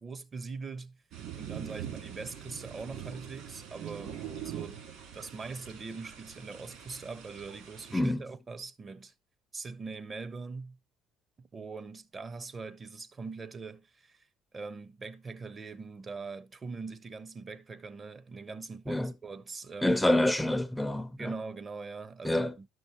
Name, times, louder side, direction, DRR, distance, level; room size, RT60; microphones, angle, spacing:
voice 1, 0.0-1.0 1.3-4.9 5.1-9.1 9.5-10.8 11.4-14.3 14.5-20.0 21.2-22.7, right 4 dB, 30° right, 0.8 m, -42 dB
sound 1, 1.1-8.0, right 9 dB, 65° right, 3.2 m, -43 dB
voice 2, 7.9-8.2 18.9-19.1 19.8-21.3 22.2-22.5, left 1 dB, 5° left, 0.5 m, -27 dB
11.5 x 6.1 x 3.0 m
hypercardioid pair, 70°, 0 cm